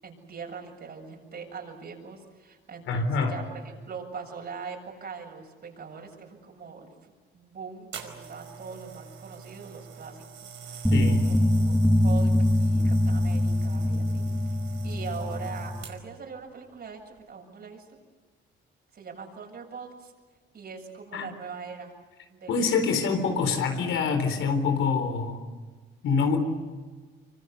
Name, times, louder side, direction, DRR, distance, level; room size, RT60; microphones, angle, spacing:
voice 1, 0.0-10.9 11.3-14.5 14.8-17.9 18.9-20.1 20.5-21.9 22.3-22.7, right 5 dB, 55° right, 7.8 m, -42 dB
voice 2, 2.9-3.4 10.9-11.3 21.1-21.4 22.5-25.4 26.0-26.4, left 4 dB, 80° left, 4.1 m, -25 dB
sound 1, 7.9-16.2 17.0-17.2, right 6 dB, 70° right, 5.1 m, -45 dB
sound 2, 10.8-15.8, left 1 dB, ahead, 2.1 m, -23 dB
25.5 x 24.5 x 8.3 m
cardioid pair, 90°, 20 cm